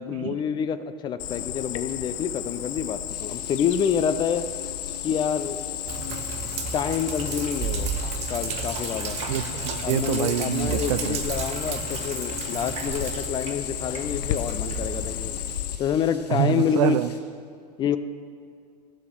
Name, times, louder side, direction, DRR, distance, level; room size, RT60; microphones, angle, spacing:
voice 1, 0.0-4.4 5.0-5.6 6.7-7.9 8.3-9.2 9.8-15.4 15.8-17.0 17.8-18.0, left 8 dB, 20° left, 12 dB, 0.4 m, -27 dB
Cricket, 1.2-15.8, left 11 dB, 50° left, 0.8 m, -33 dB
sound 1, 3.1-17.2, left 5 dB, 70° left, 1.3 m, -49 dB
Sink (filling or washing), 5.9-15.6, right 8 dB, 30° right, 0.8 m, -33 dB
voice 2, 9.3-11.2 16.3-17.1, right 12 dB, 50° right, 15 dB, 0.5 m, -26 dB
16.0 x 6.4 x 6.4 m, 2.3 s
figure-of-eight pair, 95°, 21 cm